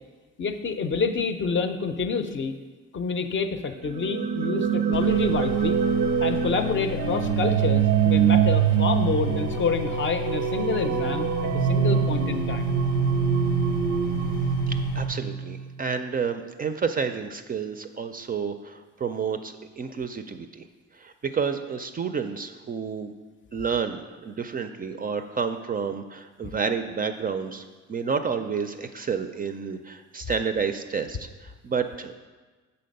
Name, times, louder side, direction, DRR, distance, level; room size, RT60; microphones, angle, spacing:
voice 1, 0.4-2.5 2.9-5.8 6.2-12.8 26.4-26.5, left 5 dB, 40° left, 7 dB, 0.5 m, -28 dB
sound 1, 3.8-15.7, right 9 dB, 85° right, 0.5 m, -24 dB
sound 2, 4.9-15.0, left 7 dB, 85° left, 0.8 m, -34 dB
voice 2, 14.7-20.6 20.9-23.1 23.5-32.1, right 6 dB, 30° right, 8 dB, 0.4 m, -30 dB
6.6 x 4.2 x 5.3 m, 1.3 s
cardioid pair, 90°, 30 cm